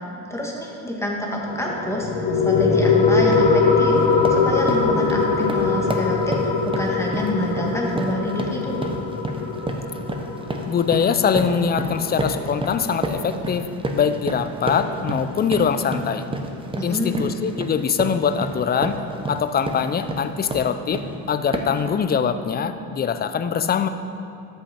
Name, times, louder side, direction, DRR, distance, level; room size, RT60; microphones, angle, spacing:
voice 1, 0.3-8.9 16.8-17.2, left 1 dB, 5° left, -2 dB, 1.5 m, -27 dB
sound 1, 1.4-12.5, left 4 dB, 75° left, 1.5 m, -22 dB
sound 2, 2.5-2.7 3.1-3.5 3.9-21.2 21.5-21.9, right 1 dB, 15° right, 0.8 m, -30 dB
voice 2, 10.7-13.7 13.9-16.3 16.8-19.0 19.3-23.9, left 7 dB, 25° left, 10 dB, 0.4 m, -23 dB
13.0 x 5.7 x 4.3 m, 2.6 s
supercardioid pair, 105°, 42 cm